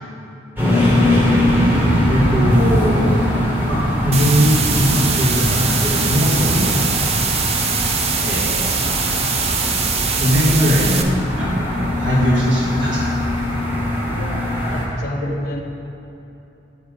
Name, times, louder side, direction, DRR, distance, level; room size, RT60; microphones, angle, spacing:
sound 1, 0.6-14.9, left 1 dB, 10° right, 1.1 m, -21 dB
voice 1, 2.1-3.0 3.7-7.0 8.2-8.7 10.1-13.0, equal, 70° right, -6 dB, 1.6 m, -20 dB
sound 2, 4.1-11.0, right 5 dB, 30° right, 0.4 m, -22 dB
voice 2, 14.1-15.6, left 1 dB, 40° left, -1 dB, 0.6 m, -30 dB
7.9 x 5.6 x 5.2 m, 2.9 s
head